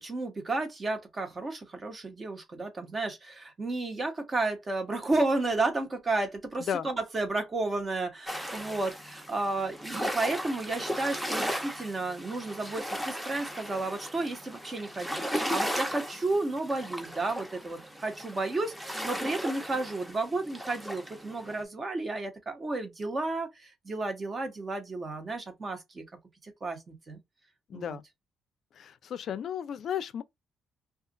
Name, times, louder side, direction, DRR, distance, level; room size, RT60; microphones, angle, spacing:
voice 1, 0.0-26.0 26.4-27.2 27.7-28.0, right 2 dB, 35° right, 1.0 m, -32 dB
sound 1, 8.3-21.6, equal, 5° right, 0.8 m, -36 dB
voice 2, 27.7-28.0 28.7-30.2, left 9 dB, 65° left, 0.4 m, -34 dB
2.4 x 2.4 x 3.7 m
cardioid pair, 90°, 0 cm